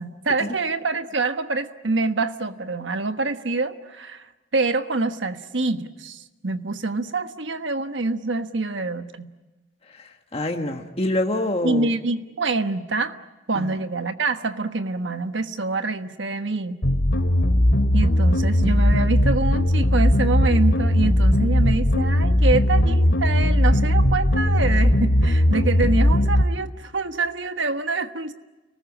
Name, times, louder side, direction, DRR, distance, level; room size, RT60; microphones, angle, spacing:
voice 1, 0.0-9.3 11.6-13.2 13.5-16.8 17.9-28.3, right 3 dB, 70° right, 9 dB, 1.3 m, -26 dB
voice 2, 9.9-11.9 13.5-13.7, left 1 dB, 30° left, 3 dB, 1.5 m, -26 dB
sound 1, 16.8-26.4, left 1 dB, 75° left, 2.7 m, -18 dB
29.5 x 19.5 x 9.9 m, 1.2 s
head